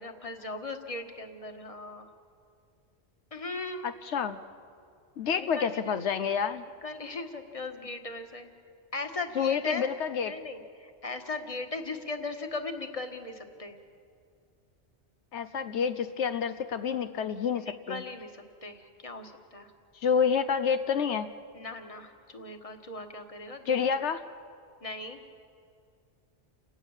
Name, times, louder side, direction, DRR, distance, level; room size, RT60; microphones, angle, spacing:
voice 1, 0.0-2.1 3.3-3.9 5.4-5.9 6.8-8.5 8.9-9.9 10.2-13.8 17.6-18.3 18.6-19.7 21.5-24.1 24.8-25.2, left 3 dB, 30° left, 5 dB, 1.7 m, -38 dB
voice 2, 3.8-4.4 5.2-6.6 9.4-10.3 15.3-18.0 20.0-21.3 23.7-24.2, left 7 dB, 80° left, 10 dB, 1.1 m, -28 dB
29.0 x 19.0 x 7.3 m, 2.4 s
omnidirectional pair, 1.2 m